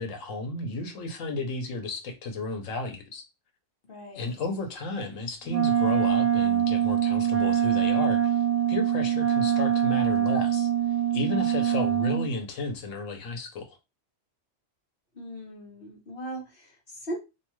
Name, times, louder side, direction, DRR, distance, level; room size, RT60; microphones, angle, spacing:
voice 1, 0.0-3.2 4.1-8.4 8.7-10.7 11.1-13.8, left 2 dB, 90° left, 1.2 m, -33 dB
voice 2, 3.9-4.4 15.1-17.2, right 1 dB, 50° left, 1.0 m, -39 dB
Wind instrument woodwind instrument, 5.5-12.3, right 9 dB, 80° right, 1.0 m, -24 dB
2.8 x 2.3 x 3.0 m
omnidirectional pair, 1.3 m